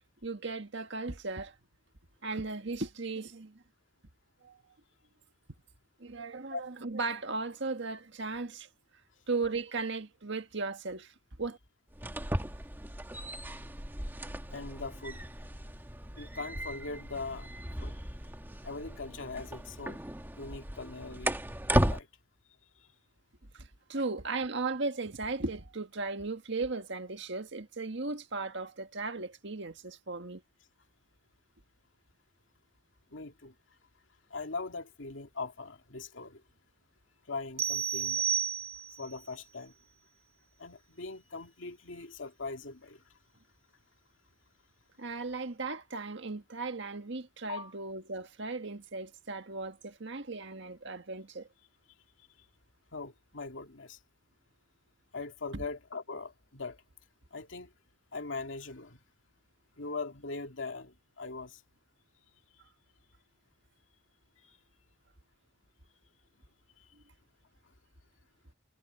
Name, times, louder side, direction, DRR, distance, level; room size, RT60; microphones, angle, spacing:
voice 1, 0.2-1.5 2.2-3.6 4.4-4.6 6.0-8.7 9.3-11.6 23.5-30.4 45.0-51.5 55.5-55.6, right 3 dB, 60° right, 1.7 m, -36 dB
sound 1, 11.9-22.0, right 1 dB, 10° right, 1.7 m, -35 dB
voice 2, 14.5-15.3 16.1-18.0 18.6-20.0 20.4-21.4 21.7-22.1 22.8-22.9 33.1-33.5 34.3-36.4 37.2-38.3 39.0-39.7 40.6-43.2 47.5-47.7 52.9-54.0 55.1-56.8 57.3-57.7 58.1-59.0 59.8-61.6 64.4-64.6 66.8-66.9 67.6-67.7, left 3 dB, 70° left, 2.4 m, -41 dB
sound 2, 37.6-39.1, right 8 dB, 30° right, 0.4 m, -31 dB
head